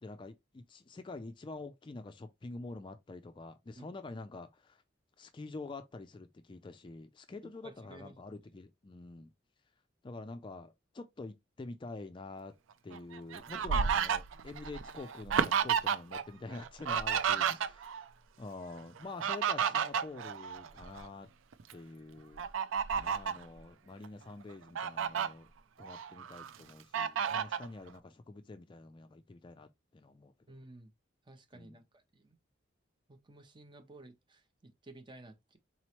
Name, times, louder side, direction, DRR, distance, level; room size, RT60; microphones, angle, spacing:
voice 1, 0.0-4.8 5.2-9.3 10.0-12.6 12.8-18.0 18.4-21.3 21.7-22.5 22.9-25.5 25.8-30.3 31.5-31.8, left 3 dB, 25° left, 0.3 m, -47 dB
voice 2, 7.6-8.1 30.5-30.9 31.3-32.4 33.1-35.6, right 2 dB, 25° right, 0.6 m, -54 dB
Fowl, 12.9-16.2 16.5-18.0 19.0-21.1 21.5-21.7 22.4-23.4 24.0-24.1 24.5-25.3 25.8-26.5 26.9-27.7, right 7 dB, 85° right, 0.4 m, -32 dB
4.1 x 3.0 x 2.9 m
head